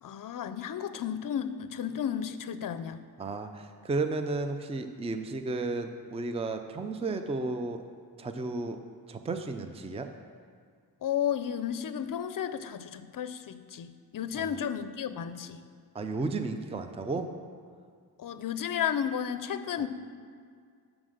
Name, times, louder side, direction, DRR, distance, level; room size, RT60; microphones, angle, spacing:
voice 1, 0.0-3.0 11.0-15.7 18.2-19.9, left 9 dB, 55° left, 12 dB, 0.5 m, -33 dB
voice 2, 3.2-7.8 8.2-8.8 9.1-10.1 14.4-14.6 15.9-17.3 19.8-19.9, right 3 dB, 15° right, 7 dB, 0.4 m, -33 dB
7.4 x 6.1 x 6.6 m, 2.1 s
wide cardioid pair, 165°, 39 cm